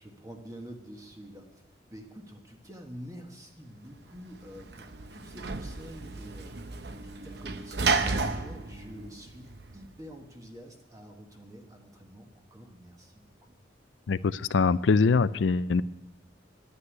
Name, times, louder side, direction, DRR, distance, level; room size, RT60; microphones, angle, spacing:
voice 1, 0.0-13.5, equal, 20° right, 2 dB, 1.4 m, -48 dB
Sliding door / Slam, 4.1-9.9, right 4 dB, 60° right, 0.8 m, -33 dB
voice 2, 14.1-15.8, left 4 dB, 85° left, 16 dB, 0.4 m, -23 dB
11.5 x 9.6 x 9.4 m, 1.1 s
head